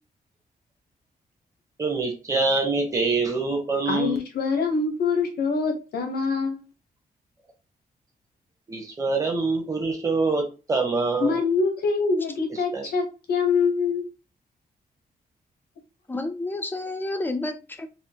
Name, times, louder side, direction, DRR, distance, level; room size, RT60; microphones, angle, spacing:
voice 1, 1.8-4.2 8.7-11.4 12.7-12.9, right 3 dB, 20° right, 1 dB, 1.1 m, -25 dB
voice 2, 3.9-6.6 11.2-14.0, left 4 dB, 80° left, 4 dB, 1.0 m, -24 dB
voice 3, 16.1-17.9, left 2 dB, 10° left, 6 dB, 0.5 m, -30 dB
4.2 x 2.5 x 2.9 m, 0.31 s
wide cardioid pair, 130°, 16 cm